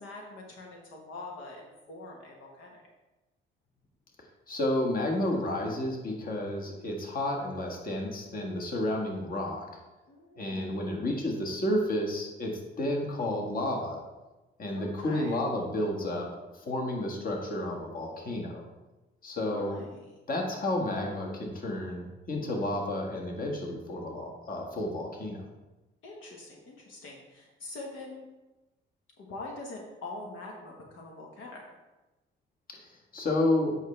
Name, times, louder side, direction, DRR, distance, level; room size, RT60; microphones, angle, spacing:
voice 1, 0.0-2.9 10.1-11.1 14.8-15.4 19.5-20.1 26.0-28.2 29.2-31.6, left 2 dB, 80° left, 0 dB, 1.3 m, -44 dB
voice 2, 4.5-9.7 10.4-14.0 14.6-18.6 19.2-19.8 20.3-25.4 32.7-33.8, left 1 dB, 45° left, 0 dB, 1.6 m, -31 dB
8.0 x 5.5 x 3.3 m, 1.1 s
cardioid pair, 90°, 20 cm